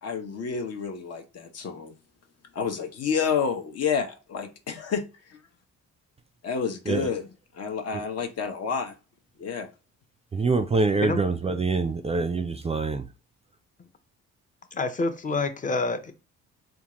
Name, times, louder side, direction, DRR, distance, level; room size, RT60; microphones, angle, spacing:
voice 1, 0.0-1.9 2.5-5.0 5.3-5.4 6.4-7.3 7.5-8.9 9.4-9.7, left 6 dB, 55° left, 0.9 m, -29 dB
voice 2, 10.3-13.1, right 3 dB, 20° right, 0.4 m, -25 dB
voice 3, 14.7-16.1, left 3 dB, 25° left, 0.6 m, -27 dB
3.6 x 2.4 x 2.9 m
cardioid pair, 90°, 30 cm